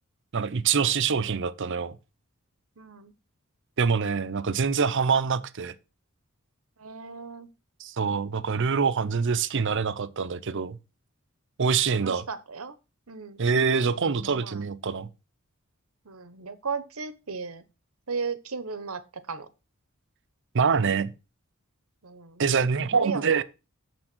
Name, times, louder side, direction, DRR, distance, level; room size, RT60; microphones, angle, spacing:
voice 1, 0.3-1.9 3.8-5.7 7.8-10.8 11.6-12.2 13.4-15.1 20.5-21.1 22.4-23.4, right 5 dB, 60° right, 0.6 m, -25 dB
voice 2, 2.8-3.1 6.8-7.5 12.0-12.7 13.1-13.4 14.1-14.7 16.0-17.6 18.1-19.5 22.0-22.6 22.9-23.4, right 5 dB, 85° right, 1.1 m, -36 dB
7.1 x 6.2 x 6.1 m
head